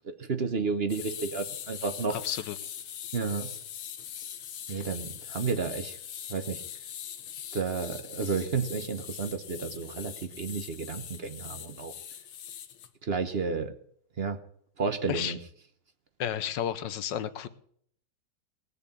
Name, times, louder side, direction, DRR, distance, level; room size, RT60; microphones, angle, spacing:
voice 1, 0.0-2.2 3.1-3.5 4.7-6.0 6.3-6.6 7.5-11.9 13.0-13.7 14.2-14.4 14.8-15.4, right 5 dB, 40° right, 9 dB, 0.9 m, -31 dB
sound 1, 0.9-12.9, left 9 dB, 85° left, 1.9 m, -42 dB
voice 2, 2.2-2.5 4.7-4.8 15.1-15.3 16.2-17.5, left 10 dB, 65° left, 13 dB, 1.4 m, -32 dB
19.0 x 6.9 x 8.6 m, 0.64 s
omnidirectional pair, 2.2 m